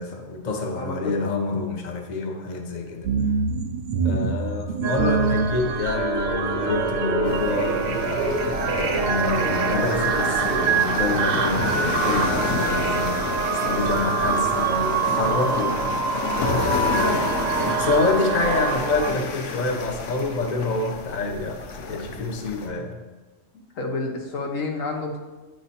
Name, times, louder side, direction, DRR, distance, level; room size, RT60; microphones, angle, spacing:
voice 1, 0.0-3.1 4.0-8.3 8.7-13.4 13.6-15.8 16.7-17.3 17.8-23.0, left 3 dB, 40° left, 2 dB, 0.8 m, -27 dB
voice 2, 0.7-1.1 23.5-25.2, left 3 dB, 90° left, 1 dB, 1.3 m, -30 dB
sound 1, 3.0-19.0 19.6-20.3 20.7-20.9, right 4 dB, 60° right, 0.6 m, -29 dB
sound 2, 4.8-19.1, right 5 dB, 80° right, 1.1 m, -26 dB
sound 3, 7.2-22.7, left 3 dB, 75° left, 1.0 m, -30 dB
9.0 x 3.1 x 4.2 m, 1.2 s
omnidirectional pair, 1.3 m